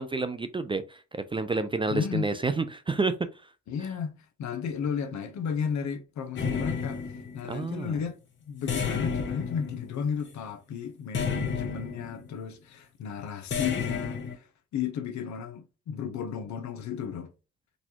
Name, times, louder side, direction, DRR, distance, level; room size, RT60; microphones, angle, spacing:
voice 1, 0.0-3.1 7.5-8.0, right 3 dB, 20° right, 0.3 m, -29 dB
voice 2, 1.9-2.3 3.7-7.0 7.3-14.4 14.7-17.3, left 7 dB, 70° left, 0.7 m, -33 dB
sound 1, 6.3-7.6 8.7-10.3 11.1-12.3 13.5-14.4, left 6 dB, 40° left, 0.8 m, -31 dB
4.0 x 2.3 x 2.8 m
cardioid pair, 90°, 30 cm